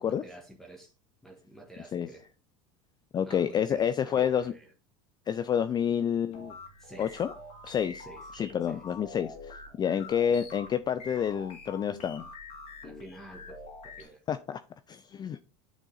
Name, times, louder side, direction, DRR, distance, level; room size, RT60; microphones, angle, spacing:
voice 1, 0.0-0.9 1.2-2.2 3.2-4.7 6.8-7.2 8.0-8.2 8.7-8.8 10.3-10.4 12.8-14.2, right 2 dB, 5° left, 1.5 m, -49 dB
voice 2, 3.1-4.5 5.3-6.5 7.0-7.3 7.6-8.1 8.3-12.2 14.3-14.6 14.9-15.4, left 8 dB, 25° left, 0.4 m, -29 dB
sound 1, 6.3-14.0, left 3 dB, 45° left, 2.3 m, -46 dB
9.1 x 3.7 x 4.0 m
hypercardioid pair, 95°, 16 cm